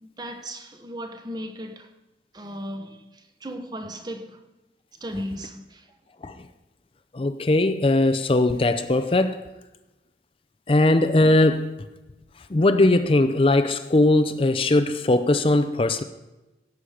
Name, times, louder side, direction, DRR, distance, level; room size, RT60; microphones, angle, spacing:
voice 1, 0.0-1.9 2.3-4.4 5.0-6.0, equal, 25° right, 0.9 m, -36 dB
voice 2, 7.1-9.4 10.7-11.8 12.5-16.0, left 2 dB, 30° left, 0.5 m, -20 dB
16.5 x 8.2 x 5.0 m
head